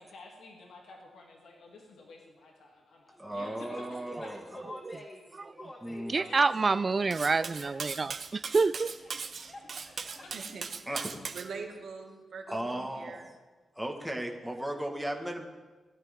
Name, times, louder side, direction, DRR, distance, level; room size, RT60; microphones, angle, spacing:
voice 1, 0.0-4.3 6.1-6.8 9.4-9.5 10.2-10.6, left 2 dB, 80° left, 2.6 m, -51 dB
voice 2, 3.2-4.4 5.8-6.1 10.9-11.1 12.5-13.4 13.8-15.5, right 1 dB, 5° right, 1.6 m, -36 dB
voice 3, 3.7-6.3 6.6-7.0 7.4-7.7 9.1-9.2 9.5-10.2, left 1 dB, 30° left, 2.5 m, -47 dB
voice 4, 6.1-9.0, right 4 dB, 30° right, 0.3 m, -27 dB
Cutlery silverware, 7.1-11.5, right 5 dB, 50° right, 0.9 m, -39 dB
voice 5, 10.3-10.7 11.3-13.3, right 5 dB, 75° right, 1.9 m, -43 dB
18.5 x 12.0 x 3.7 m
wide cardioid pair, 125°, 0 cm